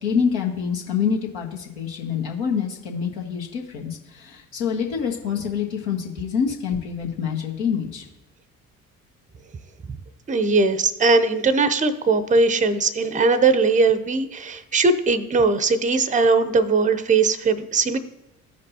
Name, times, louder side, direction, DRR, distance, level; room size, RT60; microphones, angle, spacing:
voice 1, 0.0-8.0, left 7 dB, 70° left, -1 dB, 1.6 m, -26 dB
voice 2, 10.3-18.0, right 3 dB, 20° right, 13 dB, 0.6 m, -19 dB
14.5 x 5.2 x 2.8 m, 0.97 s
hypercardioid pair, 50°, 40 cm